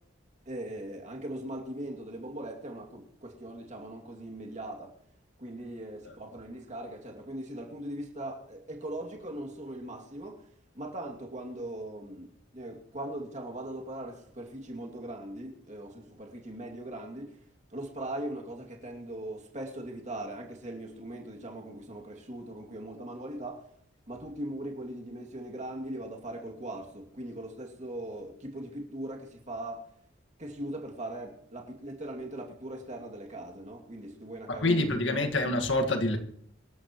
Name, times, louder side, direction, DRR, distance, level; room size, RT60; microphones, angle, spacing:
voice 1, 0.5-4.9 5.4-10.4 10.7-17.4 17.7-23.7 24.1-29.9 30.4-35.1, right 1 dB, 35° right, 2.6 m, -40 dB
voice 2, 34.5-36.2, left 2 dB, 65° left, 1.8 m, -26 dB
24.5 x 12.5 x 3.1 m
head